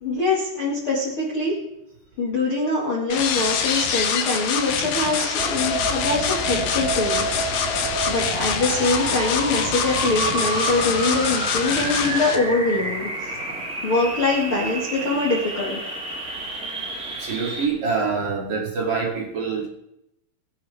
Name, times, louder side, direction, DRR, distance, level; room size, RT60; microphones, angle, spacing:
voice 1, 0.0-1.5 2.2-7.6 8.1-13.3 13.8-15.8, left 3 dB, 45° left, -4 dB, 1.8 m, -23 dB
sound 1, 3.1-12.4, left 7 dB, 65° left, 2.5 m, -25 dB
sound 2, 5.4-17.7, right 2 dB, 20° right, 3.2 m, -29 dB
voice 2, 17.2-19.7, right 5 dB, 55° right, -1 dB, 2.9 m, -25 dB
21.5 x 8.9 x 3.6 m, 0.82 s
omnidirectional pair, 5.5 m